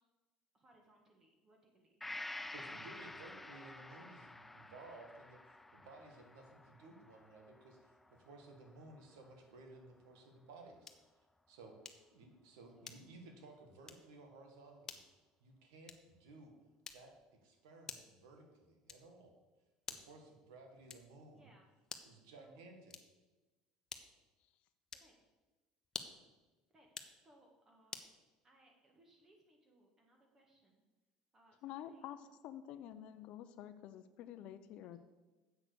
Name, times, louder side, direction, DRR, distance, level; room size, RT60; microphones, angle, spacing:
voice 1, 0.5-2.1 12.6-13.0 21.3-21.7 22.2-22.6 24.9-25.1 26.7-28.0 28.4-30.8 31.3-32.2 34.4-34.5 34.8-35.0, right 1 dB, 25° right, 1 dB, 1.8 m, -68 dB
Gong, 2.0-9.6 10.0-10.1, left 2 dB, 10° left, 0.3 m, -51 dB
voice 2, 2.5-10.9 11.5-11.7 12.1-15.0 15.4-16.5 16.9-19.3 19.9-21.5 22.1-22.9, right 2 dB, 85° right, 3 dB, 1.9 m, -57 dB
sound 1, 10.8-11.2 11.8-12.2 12.8-13.3 13.8-14.1 14.8-15.1 15.8-16.2 16.8-17.3 17.9-18.2 18.9-19.2 19.8-20.2 20.9-21.2 21.8-22.2 22.9-23.3 23.9-24.3 24.9-25.2 25.8-26.3 26.8-27.2 27.9-28.2, left 5 dB, 25° left, 0.9 m, -50 dB
voice 3, 31.6-32.2 32.4-35.0, left 11 dB, 60° left, 10 dB, 0.6 m, -49 dB
8.0 x 6.2 x 6.8 m, 1.2 s
supercardioid pair, 110°, 2 cm